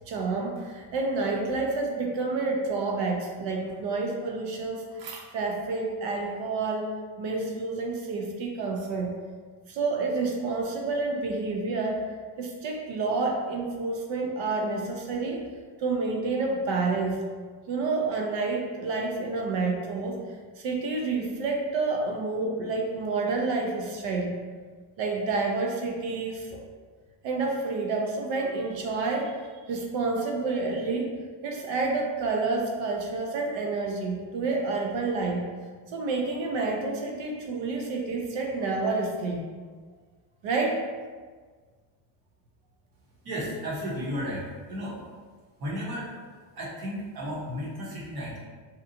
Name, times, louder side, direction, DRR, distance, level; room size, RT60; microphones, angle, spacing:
voice 1, 0.1-6.9 7.2-9.1 9.7-12.0 12.4-15.5 15.8-17.2 17.7-20.2 20.6-24.3 25.0-26.6 27.2-29.4 29.7-31.1 31.4-35.4 35.9-39.4 40.4-40.8, right 3 dB, 70° right, 1 dB, 0.7 m, -29 dB
voice 2, 43.2-44.4 44.7-45.0 45.6-48.4, equal, 50° right, -5 dB, 1.0 m, -34 dB
2.8 x 2.3 x 2.6 m, 1.5 s
cardioid pair, 120°, 46 cm